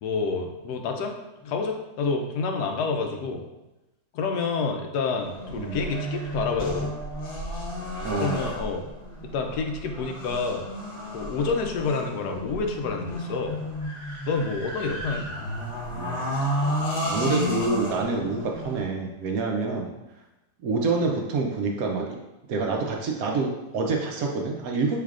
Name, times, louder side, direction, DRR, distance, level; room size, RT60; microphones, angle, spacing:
voice 1, 0.0-1.1 1.4-3.4 4.1-6.9 8.2-8.8 9.3-10.7 11.1-13.6 14.3-15.3, left 4 dB, 80° left, 3 dB, 1.1 m, -28 dB
sound 1, 5.2-18.8, equal, 45° left, 0.9 m, -32 dB
voice 2, 8.0-8.5 15.9-16.3 17.0-19.9 20.6-22.2 22.5-25.0, right 3 dB, 70° right, 1 dB, 0.9 m, -27 dB
5.5 x 3.3 x 2.4 m, 0.98 s
omnidirectional pair, 1.7 m